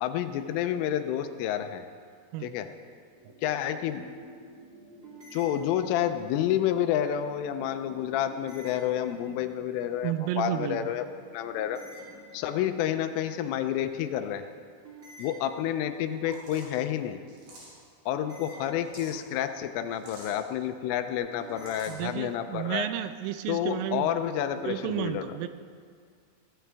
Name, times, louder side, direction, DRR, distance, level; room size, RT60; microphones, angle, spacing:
voice 1, 0.0-1.8 2.4-2.7 3.4-4.0 5.3-11.1 11.3-11.8 12.3-14.4 15.2-17.2 18.1-22.9 23.5-25.4, left 10 dB, 80° left, 8 dB, 3.1 m, -29 dB
sound 1, 3.1-13.3, equal, 5° left, 4.1 m, -54 dB
sound 2, 5.0-6.3 8.3-9.6 11.6-12.9 14.8-16.1 18.1-19.4 21.4-22.3, right 2 dB, 20° right, 2.5 m, -49 dB
voice 2, 10.0-10.9 21.9-24.1 24.7-25.5, right 13 dB, 85° right, 11 dB, 3.2 m, -32 dB
sound 3, 15.9-16.0 16.2-16.7 17.3-17.9 18.6-19.2 19.9-20.4 21.3-22.0, right 1 dB, 60° right, 7.5 m, -48 dB
22.5 x 16.5 x 3.5 m, 2.1 s
omnidirectional pair, 5.9 m